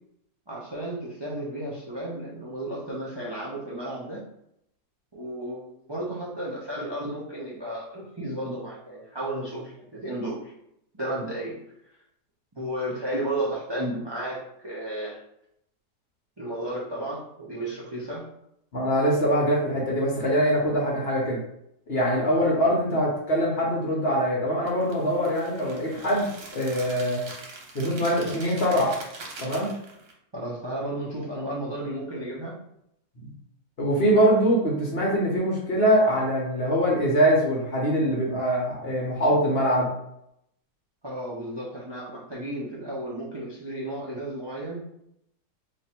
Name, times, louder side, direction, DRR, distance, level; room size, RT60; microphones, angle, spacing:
voice 1, 0.5-4.2 5.1-10.5 10.9-11.6 12.6-15.2 16.4-18.3 30.3-32.6 41.0-44.9, right 1 dB, 45° right, -5 dB, 0.3 m, -33 dB
voice 2, 18.7-21.4 21.9-27.2 27.7-29.0 29.4-29.7 33.8-39.9, equal, 45° left, -3 dB, 0.9 m, -23 dB
sound 1, 24.7-30.1, right 3 dB, 85° right, 1.5 m, -42 dB
3.1 x 2.6 x 4.3 m, 0.77 s
omnidirectional pair, 1.9 m